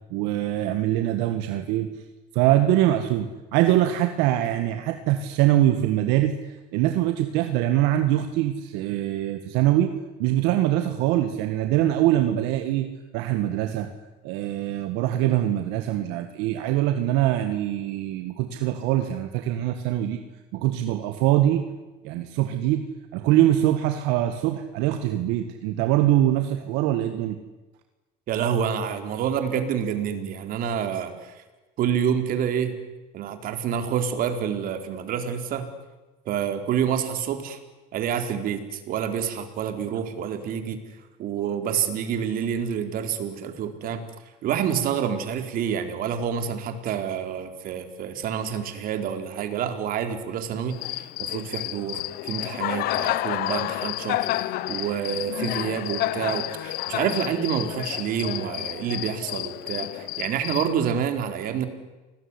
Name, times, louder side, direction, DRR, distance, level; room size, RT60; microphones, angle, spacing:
voice 1, 0.1-2.0 2.3-9.9 10.2-12.9 13.1-13.9 14.2-20.2 20.5-21.6 22.0-22.8 23.1-27.4, right 13 dB, 75° right, 7 dB, 2.0 m, -23 dB
voice 2, 28.3-31.4 31.8-32.8 33.1-35.7 36.3-37.6 37.9-40.8 41.2-44.0 44.4-61.7, right 8 dB, 55° right, 7 dB, 4.2 m, -28 dB
Cricket, 50.7-60.7, left 15 dB, 60° left, 1.0 m, -30 dB
29.5 x 20.5 x 9.9 m, 1.1 s
cardioid pair, 125°, 18 cm